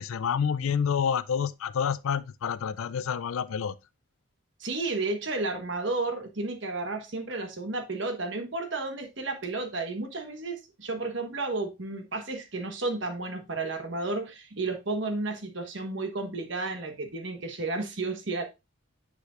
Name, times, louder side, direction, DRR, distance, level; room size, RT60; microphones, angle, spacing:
voice 1, 0.0-3.7, left 7 dB, 80° left, 0.4 m, -28 dB
voice 2, 4.6-18.4, right 3 dB, 60° right, 1.3 m, -32 dB
9.4 x 4.9 x 2.5 m
head